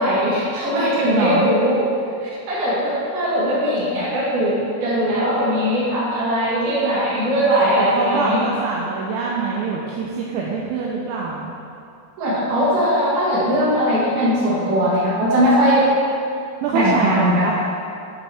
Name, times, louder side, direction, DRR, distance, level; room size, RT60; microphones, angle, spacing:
voice 1, 0.0-1.8 2.2-8.4 12.2-15.9 16.7-17.6, equal, 60° right, -9 dB, 3.2 m, -19 dB
voice 2, 1.1-1.5 7.7-11.5 16.6-17.6, right 4 dB, 85° right, -3 dB, 2.7 m, -24 dB
11.5 x 5.3 x 3.4 m, 2.5 s
omnidirectional pair, 5.9 m